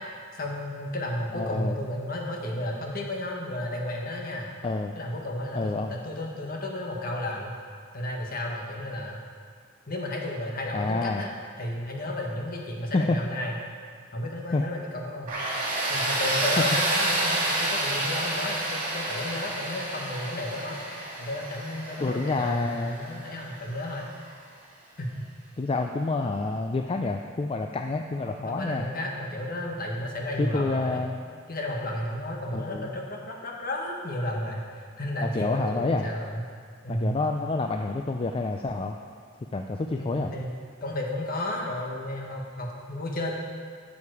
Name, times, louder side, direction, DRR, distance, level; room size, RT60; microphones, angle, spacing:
voice 1, 0.3-4.5 4.9-7.5 7.9-9.2 9.9-11.3 11.6-13.5 14.1-15.4 15.9-20.8 21.2-24.1 25.0-25.2 28.3-31.0 31.5-36.5 36.8-37.2 39.9-40.5 40.8-43.3, left 1 dB, 50° left, 0 dB, 1.5 m, -33 dB
voice 2, 1.3-1.8 4.6-5.0 5.5-5.9 10.7-11.2 12.9-13.2 14.5-14.6 22.0-23.0 25.6-28.9 30.4-31.2 32.5-32.9 35.2-36.1 36.9-39.0 39.5-40.3, left 3 dB, 30° left, 4 dB, 0.4 m, -28 dB
Tools, 15.3-24.0, right 1 dB, 45° right, 2.4 m, -29 dB
11.0 x 7.2 x 4.8 m, 2.1 s
head